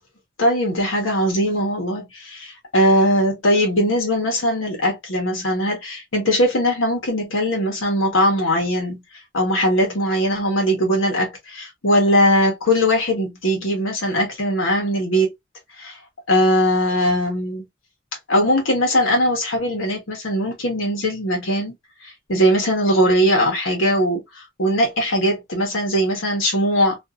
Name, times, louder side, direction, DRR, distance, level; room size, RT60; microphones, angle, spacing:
voice 1, 0.4-9.0 9.3-15.3 15.8-16.0 16.3-17.6 18.3-21.7 22.0-27.0, equal, 90° left, 1.1 m, -20 dB
2.6 x 2.5 x 2.3 m
head